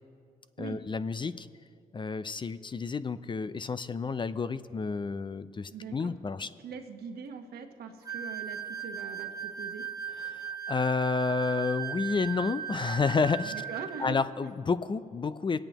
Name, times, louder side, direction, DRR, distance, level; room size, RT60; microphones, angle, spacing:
voice 1, 0.6-1.5 1.9-6.5 10.3-13.5 14.0-15.6, left 4 dB, 30° left, 14 dB, 0.5 m, -30 dB
voice 2, 5.7-6.1 6.4-9.8 13.5-14.2, right 5 dB, 75° right, 5 dB, 1.2 m, -42 dB
sound 1, 8.0-14.1, right 9 dB, 20° right, 0.9 m, -37 dB
21.5 x 8.9 x 3.0 m, 2.2 s
supercardioid pair, 65°, 16 cm